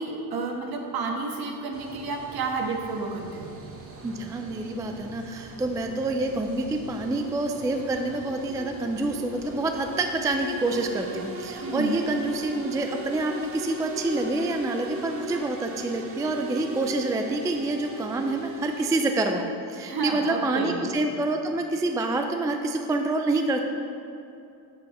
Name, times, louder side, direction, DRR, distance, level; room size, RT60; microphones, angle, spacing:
voice 1, 0.0-3.5 11.6-12.0 19.8-20.9, right 3 dB, 55° right, 2 dB, 1.4 m, -30 dB
sound 1, 1.7-19.1, right 1 dB, 30° right, 1.1 m, -39 dB
voice 2, 4.0-23.6, right 2 dB, 10° right, 4 dB, 0.3 m, -27 dB
7.9 x 7.0 x 4.2 m, 2.7 s
supercardioid pair, 100°, 45 cm